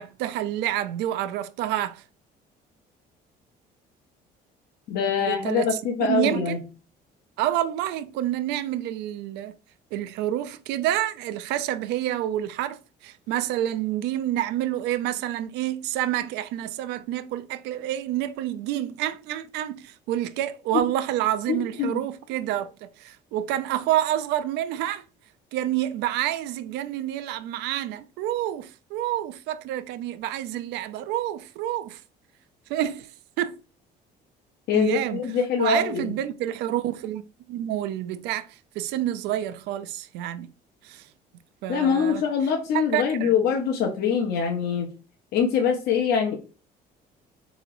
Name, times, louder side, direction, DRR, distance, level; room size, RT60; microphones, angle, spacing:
voice 1, 0.0-2.0 5.2-6.6 7.4-9.5 9.9-25.0 25.5-32.0 32.7-33.1 33.4-33.6 34.7-35.3 35.6-37.2 37.5-38.5 38.8-40.5 40.8-41.0 41.6-42.2 42.9-43.3, right 12 dB, 85° right, 0.4 m, -28 dB
voice 2, 4.9-6.6 21.5-22.0 34.7-36.1 41.7-44.9 45.3-46.4, left 6 dB, 70° left, 0.8 m, -24 dB
3.9 x 3.0 x 2.5 m
cardioid pair, 110°, 17 cm